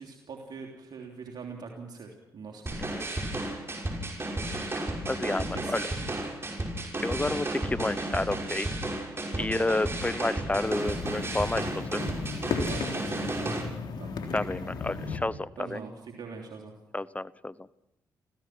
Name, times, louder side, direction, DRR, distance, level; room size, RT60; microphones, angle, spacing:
voice 1, 0.0-2.8 5.4-6.1 6.3-6.4 9.3-9.7 12.7-13.6 14.0-14.1 15.6-16.7, right 5 dB, 65° right, 1 dB, 3.3 m, -42 dB
sound 1, 2.7-13.6, right 1 dB, 35° right, 6.0 m, -33 dB
voice 2, 5.1-5.8 7.0-8.7 9.3-11.7 11.9-12.0 14.3-15.8 16.9-17.7, left 2 dB, 20° left, 18 dB, 0.8 m, -30 dB
sound 2, 10.5-15.2, left 4 dB, 75° left, 3.4 m, -35 dB
27.0 x 16.0 x 6.1 m, 0.87 s
supercardioid pair, 55°, 8 cm